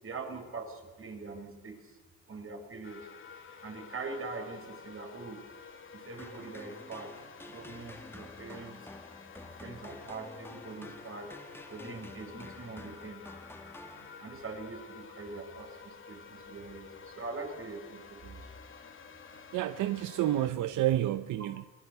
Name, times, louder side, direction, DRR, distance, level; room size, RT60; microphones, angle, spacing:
voice 1, 0.0-2.0 2.3-3.0 3.6-5.4 5.9-7.1 7.4-8.8 9.4-11.3 11.7-13.2 14.2-18.5, right 3 dB, 45° right, 5.7 m, -43 dB
sound 1, 2.8-20.5, left 6 dB, 40° left, 2.7 m, -51 dB
sound 2, 6.2-14.6, left 2 dB, 10° left, 1.8 m, -50 dB
voice 2, 19.5-21.7, right 13 dB, 80° right, 0.8 m, -29 dB
22.0 x 20.5 x 8.2 m
cardioid pair, 90°, 30 cm